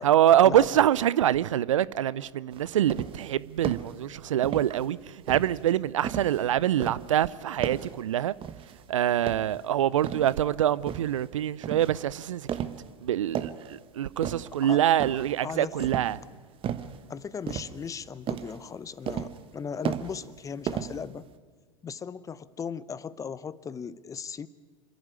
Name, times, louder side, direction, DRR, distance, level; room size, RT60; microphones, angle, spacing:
voice 1, 0.0-5.0 5.3-8.3 8.9-12.4 13.0-16.2, right 11 dB, 75° right, 0.5 m, -25 dB
sound 1, 2.5-3.3 3.6-4.0 4.4-4.9 5.3-6.4 6.8-7.1 7.6-8.0 8.4-8.8 9.2-10.4 10.9-11.2 11.6-12.0 12.5-12.9 13.2-13.7 14.2-14.6 15.0-15.4 15.8-16.2 16.6-17.0 17.5-18.0 18.3-18.6 19.1-19.5 19.8-20.4 20.7-21.3, right 9 dB, 30° right, 1.2 m, -34 dB
voice 2, 15.4-15.8 17.1-21.3 21.8-24.5, left 6 dB, 20° left, 0.6 m, -37 dB
27.0 x 11.0 x 9.5 m
figure-of-eight pair, 90°, 17 cm